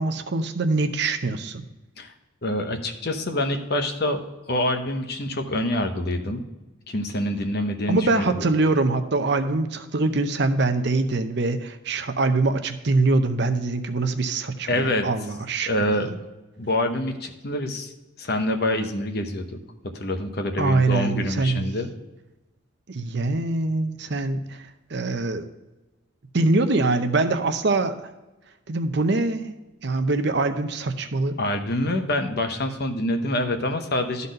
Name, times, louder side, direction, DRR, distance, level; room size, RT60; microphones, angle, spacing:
voice 1, 0.0-1.6 7.9-16.1 20.6-21.7 22.9-25.5 26.3-28.1 28.7-29.5 29.8-31.4, right 3 dB, 55° right, 8 dB, 0.7 m, -24 dB
voice 2, 2.4-4.2 4.5-6.4 6.9-8.3 14.7-15.1 15.7-16.1 16.6-17.9 18.2-19.6 19.8-21.9 31.4-34.3, left 1 dB, 50° left, 6 dB, 0.9 m, -26 dB
12.0 x 4.2 x 5.2 m, 1.1 s
head